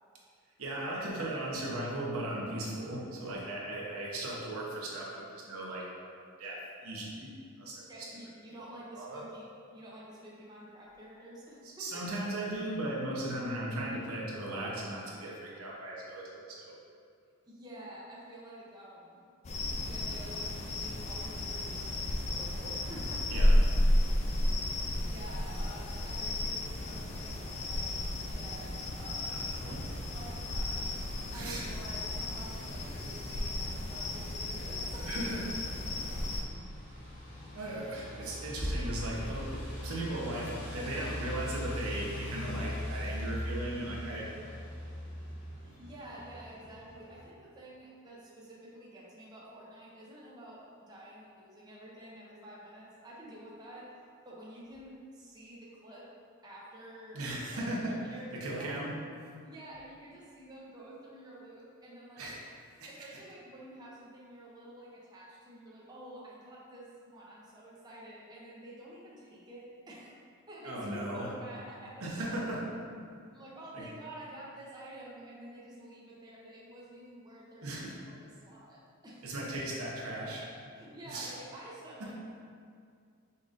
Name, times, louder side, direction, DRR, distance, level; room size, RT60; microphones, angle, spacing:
voice 1, 0.6-5.8 6.4-6.6 6.8-7.3 7.6-7.7 9.0-9.2 11.8-16.7 23.3-23.5 29.3-29.8 31.3-31.6 35.0-35.5 37.5-44.5 57.1-57.9 58.3-58.9 62.2-62.3 62.8-62.9 70.6-71.3 72.0-72.7 73.7-73.8 77.6-77.9 79.2-80.4 81.0-81.3 82.0-82.1, right 1 dB, 80° right, -4 dB, 0.9 m, -37 dB
voice 2, 7.9-9.5 9.7-12.1 17.4-19.3 19.8-23.4 25.0-27.9 28.3-29.5 30.1-31.0 31.3-35.2 45.6-53.9 54.2-56.1 56.4-57.2 58.1-58.8 59.4-62.3 62.9-70.2 70.5-72.4 73.3-79.3 80.7-82.1, right 1 dB, 20° right, -6 dB, 0.6 m, -49 dB
sound 1, 19.4-36.4, left 1 dB, 30° left, 0.4 m, -32 dB
sound 2, 35.5-47.2, left 1 dB, 75° left, 1.5 m, -41 dB
5.3 x 3.8 x 2.5 m, 2.3 s
head